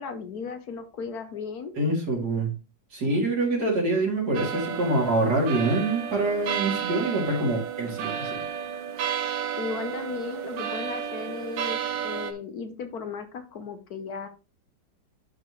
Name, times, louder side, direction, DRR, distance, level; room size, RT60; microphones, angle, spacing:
voice 1, 0.0-1.7 9.6-14.3, left 5 dB, 60° left, 1.3 m, -36 dB
voice 2, 1.7-2.5 2.9-8.4, right 2 dB, 60° right, 3.3 m, -25 dB
sound 1, 4.3-12.3, right 8 dB, 80° right, 1.6 m, -32 dB
11.5 x 4.4 x 3.1 m
omnidirectional pair, 2.0 m